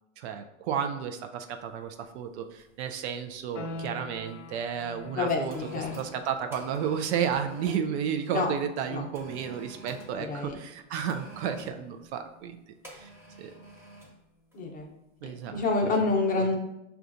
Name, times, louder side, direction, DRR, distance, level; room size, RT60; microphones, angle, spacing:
voice 1, 0.2-5.6 5.9-12.6 12.9-13.1 13.4-13.5 15.2-16.1 16.4-16.5, right 8 dB, 60° right, 6 dB, 0.5 m, -32 dB
sound 1, 1.7-1.9 2.6-2.9 3.1-4.3 5.0-7.9 9.1-10.2 11.1-11.8 12.8-14.2 14.5-14.7, right 2 dB, 5° right, 0.9 m, -49 dB
sound 2, 3.5-14.1, left 2 dB, 70° left, 0.6 m, -47 dB
voice 2, 5.2-5.9 8.3-8.5 8.9-9.0 10.2-10.6 14.5-14.9 15.5-16.6, left 3 dB, 20° left, 1 dB, 0.6 m, -27 dB
5.6 x 2.3 x 2.5 m, 0.87 s
hypercardioid pair, 105°, 38 cm